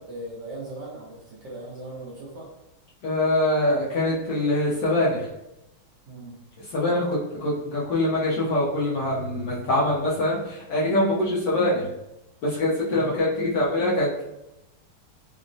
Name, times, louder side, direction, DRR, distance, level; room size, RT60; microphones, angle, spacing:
voice 1, 0.0-2.5 6.1-6.4 12.9-13.1, right 2 dB, 65° right, -5 dB, 1.1 m, -38 dB
voice 2, 3.0-5.3 6.6-11.9 12.4-14.2, left 1 dB, 65° left, -6 dB, 1.1 m, -24 dB
3.8 x 2.1 x 2.5 m, 0.89 s
omnidirectional pair, 2.4 m